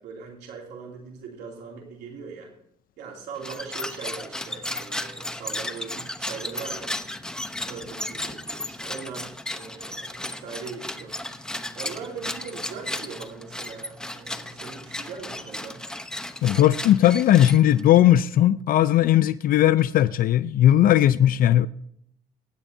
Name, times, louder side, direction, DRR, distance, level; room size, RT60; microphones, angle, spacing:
voice 1, 0.0-2.5 3.0-7.0 7.6-11.1 11.7-15.8, right 5 dB, 80° right, 2.7 m, -40 dB
sound 1, 3.4-18.0, left 1 dB, 5° left, 0.8 m, -34 dB
voice 2, 16.4-21.7, left 12 dB, 60° left, 0.4 m, -18 dB
23.0 x 9.9 x 2.7 m
cardioid pair, 110°, 17 cm